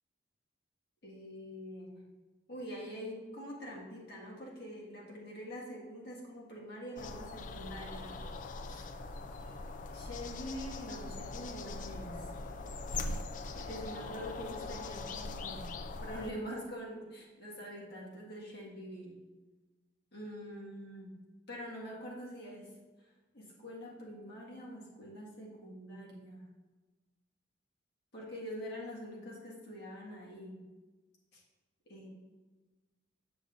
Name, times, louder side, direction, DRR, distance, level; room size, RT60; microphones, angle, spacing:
voice 1, 1.0-2.1 2.5-8.2 8.7-8.9 9.9-12.3 13.5-15.7 16.0-19.2 20.1-21.2 21.5-22.7 23.3-26.5 28.1-30.7 31.3-31.4 31.9-32.1, equal, 65° left, -4 dB, 1.8 m, -45 dB
sound 1, 7.0-16.3, left 3 dB, 45° left, 0.4 m, -41 dB
7.5 x 6.8 x 2.6 m, 1.3 s
head